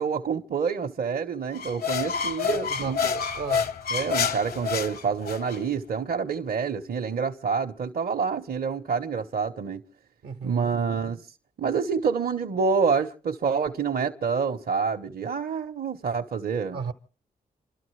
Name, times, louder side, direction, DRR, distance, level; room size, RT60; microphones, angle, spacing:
voice 1, 0.0-3.1 3.9-9.8 10.4-11.2 11.6-16.8, right 5 dB, 70° right, 1.1 m, -27 dB
sound 1, 1.5-5.6, left 6 dB, 70° left, 0.8 m, -28 dB
voice 2, 2.5-3.7 10.2-10.7 16.7-16.9, right 5 dB, 85° right, 1.3 m, -34 dB
28.0 x 12.5 x 3.2 m
cardioid pair, 60°, 16 cm